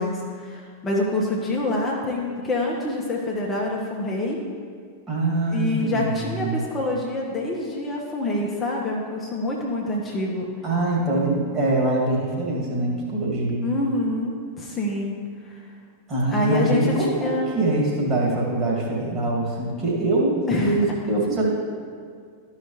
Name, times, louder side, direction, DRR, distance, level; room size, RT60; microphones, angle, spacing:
voice 1, 0.0-4.4 5.5-10.5 13.6-15.7 16.3-17.5 20.5-20.8, left 2 dB, 20° left, -3 dB, 1.1 m, -26 dB
voice 2, 5.1-6.6 10.6-13.7 16.1-21.5, right 2 dB, 25° right, -4 dB, 2.3 m, -23 dB
13.0 x 5.8 x 3.1 m, 2.1 s
figure-of-eight pair, 90°, 0 cm